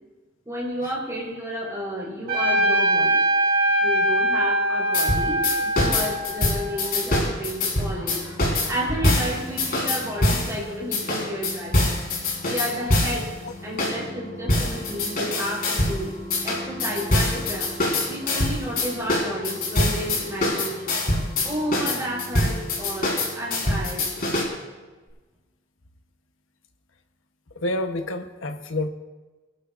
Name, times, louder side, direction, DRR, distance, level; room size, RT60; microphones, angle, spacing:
voice 1, 0.4-3.2 3.8-11.9 12.4-13.3 13.6-16.1 16.4-21.0 21.4-24.1, equal, 15° right, -4 dB, 4.8 m, -31 dB
Trumpet, 2.3-7.0, right 1 dB, 50° right, 2.4 m, -22 dB
sound 1, 4.9-10.5 10.9-13.3 13.8-14.0 14.5-16.0 16.3-24.4, left 2 dB, 50° left, 4.2 m, -24 dB
sound 2, 6.6-24.8 25.1-25.2, equal, 10° left, 5.0 m, -41 dB
voice 2, 27.6-28.9, left 1 dB, 90° left, 6 dB, 1.1 m, -28 dB
25.5 x 12.0 x 2.6 m, 1.2 s
head